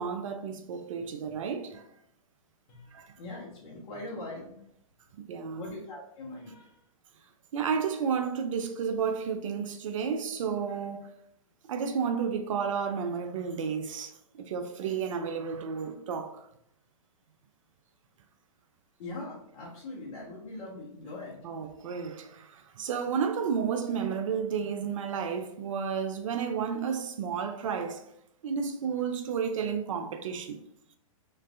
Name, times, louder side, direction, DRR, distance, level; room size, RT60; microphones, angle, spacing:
voice 1, 0.0-1.9 2.9-3.1 5.3-5.7 7.5-11.1 11.7-14.1 14.4-16.5 21.4-22.5 22.8-28.0 28.4-30.6, right 6 dB, 65° right, 0.5 m, -32 dB
voice 2, 3.2-4.5 5.5-6.8 19.0-21.4, left 2 dB, 50° left, 1.1 m, -41 dB
3.2 x 3.1 x 2.5 m
hypercardioid pair, 125°, 18 cm